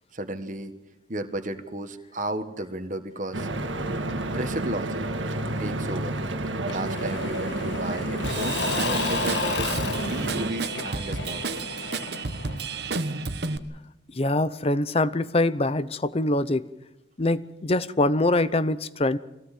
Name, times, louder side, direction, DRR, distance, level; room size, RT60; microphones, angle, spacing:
voice 1, 0.1-0.7 1.1-3.5 4.3-5.0 5.6-6.2 6.7-9.7 10.1-11.6, right 1 dB, 40° right, 8 dB, 1.5 m, -33 dB
Stream / Boat Water vehicle, 3.3-10.5, right 2 dB, 80° right, 1.9 m, -30 dB
Engine / Mechanisms / Drill, 6.7-13.4, left 4 dB, 65° left, 1.4 m, -33 dB
Drum kit / Drum, 8.2-13.6, right 4 dB, 60° right, 1.1 m, -32 dB
voice 2, 14.2-16.7 17.2-19.2, left 2 dB, 30° left, 15 dB, 0.7 m, -24 dB
23.5 x 17.0 x 7.6 m, 0.92 s
head